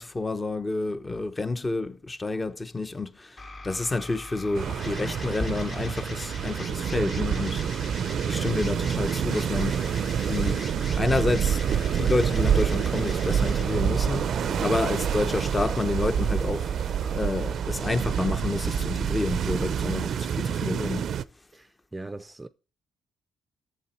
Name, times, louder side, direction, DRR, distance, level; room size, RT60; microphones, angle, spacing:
voice 1, 0.0-7.6 8.2-9.8 10.3-10.7 11.0-11.6 11.9-14.3 14.6-16.7 17.1-21.1, left 3 dB, 20° left, 0.8 m, -29 dB
sound 1, 3.4-19.4, left 2 dB, 45° left, 2.0 m, -42 dB
sound 2, 4.5-21.2, right 8 dB, 65° right, 0.5 m, -27 dB
voice 2, 21.5-22.5, right 2 dB, 15° right, 0.5 m, -40 dB
8.5 x 7.2 x 4.3 m
cardioid pair, 90°, 0 cm